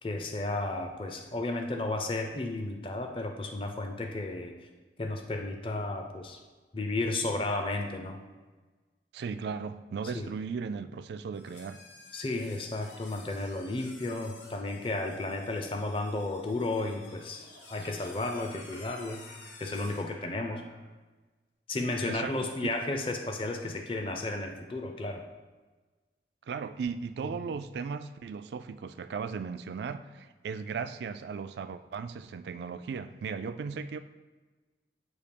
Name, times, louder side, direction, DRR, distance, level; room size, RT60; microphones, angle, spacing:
voice 1, 0.0-4.5 5.0-6.4 6.7-8.2 10.1-10.3 12.1-19.2 19.6-20.6 21.7-25.2, left 2 dB, 30° left, 4 dB, 0.5 m, -33 dB
voice 2, 9.1-11.8 22.1-22.7 26.5-34.0, right 5 dB, 70° right, 12 dB, 0.3 m, -37 dB
sound 1, 11.3-20.2, left 3 dB, 85° left, 1.0 m, -53 dB
Laughter, 16.7-20.9, left 1 dB, 60° left, 1.1 m, -55 dB
8.0 x 2.7 x 5.2 m, 1.3 s
head